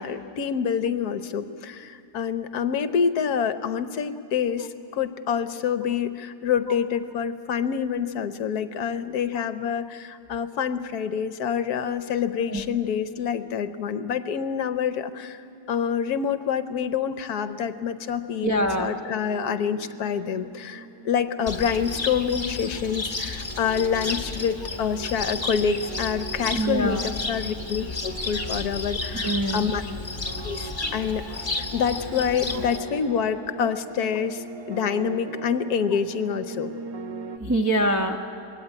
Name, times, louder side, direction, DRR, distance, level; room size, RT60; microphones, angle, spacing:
voice 1, 0.0-15.4 15.7-29.8 30.4-36.7, left 7 dB, 60° left, 11 dB, 1.2 m, -27 dB
sound 1, 18.2-37.4, right 4 dB, 65° right, 1.7 m, -40 dB
voice 2, 18.4-18.9 26.5-27.1 29.2-29.7 37.4-38.2, right 1 dB, 25° right, 2 dB, 0.3 m, -24 dB
Cricket, 21.5-32.8, left 3 dB, 15° left, 1.0 m, -32 dB
21.5 x 17.0 x 9.8 m, 2.7 s
omnidirectional pair, 2.0 m